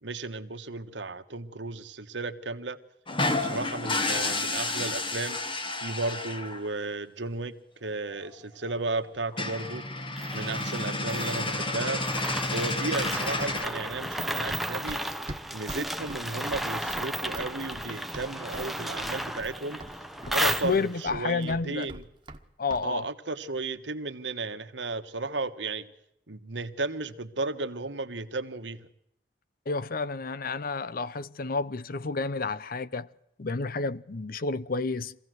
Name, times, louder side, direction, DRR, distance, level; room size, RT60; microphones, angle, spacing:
voice 1, 0.0-2.8 3.3-5.4 5.8-7.6 7.8-9.8 10.3-12.0 12.5-15.0 15.5-19.8 20.3-22.0 22.8-25.9 26.3-28.9, right 3 dB, 85° right, 1.5 m, -34 dB
sound 1, 3.1-6.7 8.2-8.3 8.6-8.7 9.0-9.1 9.3-13.6, left 2 dB, 30° left, 1.7 m, -31 dB
sound 2, 10.2-21.1, right 1 dB, ahead, 0.9 m, -34 dB
Run, 14.5-18.7 19.0-19.6 19.8-22.4 22.7-22.9, right 1 dB, 25° right, 1.5 m, -42 dB
voice 2, 20.4-21.9 22.6-23.1 29.7-33.1 33.4-35.2, left 4 dB, 55° left, 0.7 m, -30 dB
24.0 x 16.0 x 7.8 m
head